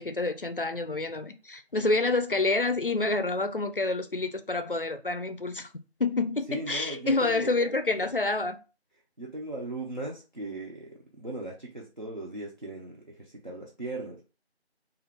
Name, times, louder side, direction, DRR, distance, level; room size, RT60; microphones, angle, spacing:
voice 1, 0.0-5.7 6.0-8.6, left 3 dB, 55° left, 0.4 m, -28 dB
voice 2, 6.5-7.7 9.2-14.2, right 2 dB, 45° right, 0.6 m, -38 dB
2.5 x 2.4 x 3.2 m
figure-of-eight pair, 180°, 33 cm